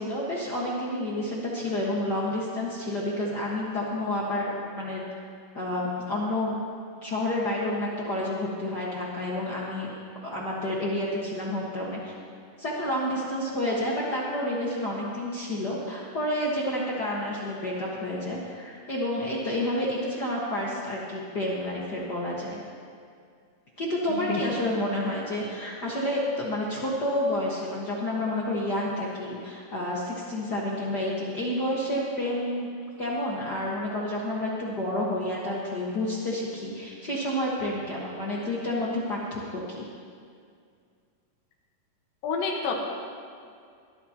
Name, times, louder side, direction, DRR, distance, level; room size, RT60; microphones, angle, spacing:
voice 1, 0.0-5.0 5.5-6.6 7.0-9.9 10.2-12.1 12.6-22.6 23.8-32.7 33.0-39.9, left 1 dB, 55° left, -5 dB, 1.1 m, -29 dB
voice 2, 24.1-24.5 42.2-42.8, left 4 dB, 75° left, -1 dB, 3.0 m, -29 dB
21.5 x 13.5 x 2.9 m, 2.2 s
omnidirectional pair, 4.2 m